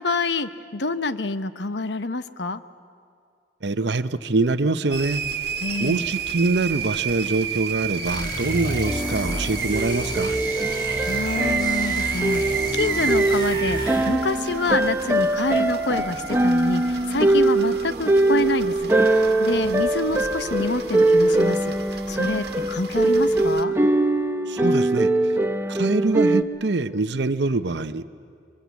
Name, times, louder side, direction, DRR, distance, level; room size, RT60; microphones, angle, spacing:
voice 1, 0.0-2.6 5.6-6.1 11.0-21.8 22.1-23.7, left 3 dB, 85° left, 12 dB, 0.9 m, -27 dB
voice 2, 3.6-5.2 5.8-10.4 24.5-25.1 25.7-28.0, right 3 dB, 85° right, 12 dB, 0.8 m, -24 dB
sound 1, 4.9-23.6, right 7 dB, 65° right, 1.6 m, -31 dB
sound 2, 8.0-14.3, left 1 dB, 25° left, 1.6 m, -32 dB
sound 3, 8.9-26.4, right 2 dB, 15° right, 0.9 m, -22 dB
27.0 x 23.5 x 8.3 m, 2.2 s
head